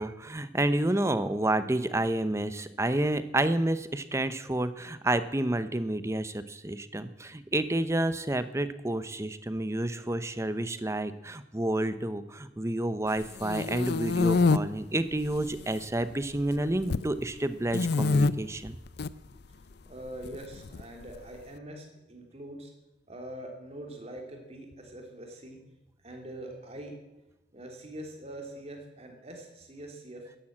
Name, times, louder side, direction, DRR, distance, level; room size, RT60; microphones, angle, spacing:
voice 1, 0.0-18.8, right 1 dB, 15° right, 12 dB, 0.8 m, -29 dB
sound 1, 13.2-14.6 15.2-15.8 16.1-17.1 17.7-18.3 18.9-19.1 20.2-21.2, left 3 dB, 60° left, 0.5 m, -26 dB
voice 2, 19.8-22.7 23.1-25.6 26.0-26.9 27.5-30.2, right 1 dB, 35° right, 2 dB, 3.2 m, -43 dB
13.5 x 11.0 x 8.8 m, 0.97 s
head